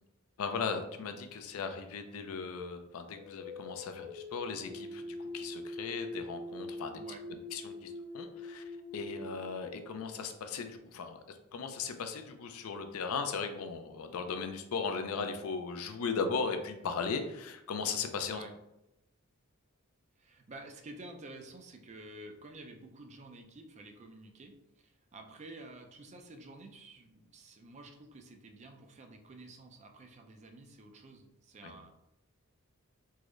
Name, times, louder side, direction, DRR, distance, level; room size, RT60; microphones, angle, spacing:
voice 1, 0.4-7.0 7.5-18.4 31.6-31.8, left 5 dB, 70° left, 7 dB, 0.4 m, -37 dB
sound 1, 3.1-10.5, left 1 dB, 75° right, 1.3 m, -44 dB
voice 2, 20.2-31.9, right 2 dB, 30° right, 4 dB, 0.3 m, -51 dB
3.6 x 2.0 x 3.0 m, 0.88 s
head